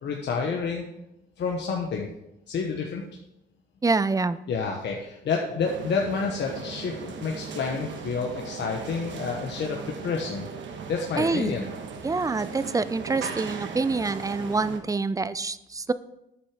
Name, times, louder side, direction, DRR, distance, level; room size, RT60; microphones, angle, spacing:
voice 1, 0.0-0.8 1.4-2.1 2.5-3.0 4.5-10.6 10.9-11.7, left 5 dB, 65° left, 0 dB, 1.3 m, -29 dB
voice 2, 3.8-4.4 11.2-11.6 12.0-15.9, right 3 dB, 15° right, 15 dB, 0.5 m, -26 dB
sound 1, 5.6-14.8, right 6 dB, 70° right, 1.4 m, -38 dB
9.5 x 6.7 x 4.9 m, 0.86 s
cardioid pair, 90°, 20 cm